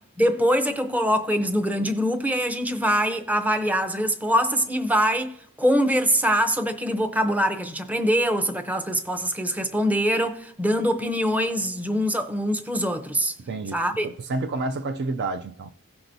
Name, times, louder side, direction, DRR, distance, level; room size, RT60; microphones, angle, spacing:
voice 1, 0.2-13.3 13.7-14.1, equal, 5° right, 0.7 m, -23 dB
voice 2, 13.4-13.8 14.0-15.7, right 3 dB, 50° right, 0.4 m, -29 dB
16.5 x 5.8 x 2.7 m
head